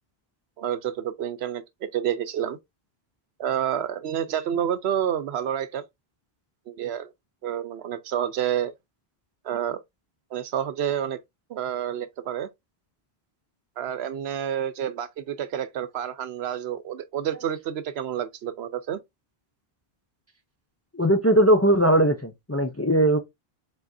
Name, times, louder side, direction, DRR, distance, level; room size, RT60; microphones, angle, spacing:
voice 1, 0.6-2.6 3.4-5.8 6.7-7.1 7.4-8.7 9.4-9.8 10.3-11.2 11.5-12.5 13.8-19.0, right 10 dB, 85° right, 0.9 m, -29 dB
voice 2, 20.9-23.2, right 1 dB, 20° left, 0.4 m, -19 dB
4.9 x 4.0 x 2.6 m
omnidirectional pair, 1.0 m